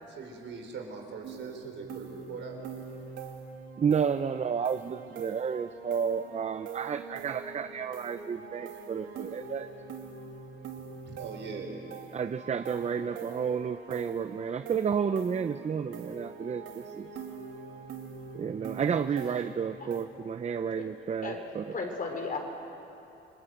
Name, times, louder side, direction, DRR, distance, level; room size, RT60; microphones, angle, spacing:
voice 1, 0.0-2.6 11.0-11.8 17.8-18.1, right 4 dB, 70° right, 2 dB, 4.8 m, -41 dB
sound 1, 1.2-20.0, right 5 dB, 85° right, 2.5 m, -44 dB
voice 2, 3.8-9.7 12.1-17.1 18.3-21.6, right 7 dB, 35° right, 11 dB, 0.7 m, -31 dB
voice 3, 21.7-22.4, left 4 dB, 45° left, 3 dB, 4.7 m, -34 dB
28.5 x 20.5 x 8.0 m, 2.9 s
cardioid pair, 90°, 20 cm